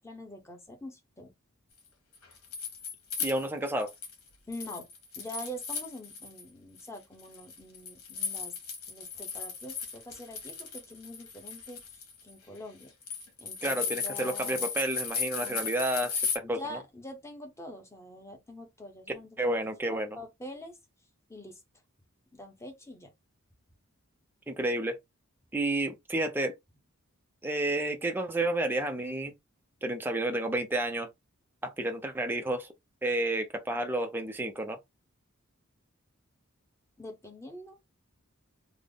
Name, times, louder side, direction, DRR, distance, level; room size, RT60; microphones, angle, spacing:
voice 1, 0.0-1.3 4.5-4.9 5.2-8.6 8.9-12.9 13.4-14.7 15.4-15.7 16.4-20.8 21.3-21.6 22.3-23.1 37.0-37.8, left 1 dB, 15° left, 0.8 m, -45 dB
sound 1, 2.1-4.2 4.5-6.4 6.8-16.4, left 5 dB, 80° left, 1.3 m, -36 dB
voice 2, 3.2-3.9 13.6-16.8 19.4-20.1 24.5-25.0 25.5-26.6 27.4-29.3 29.8-31.1 31.6-32.7 33.0-34.8, right 1 dB, 10° right, 0.4 m, -30 dB
3.4 x 2.0 x 3.7 m
head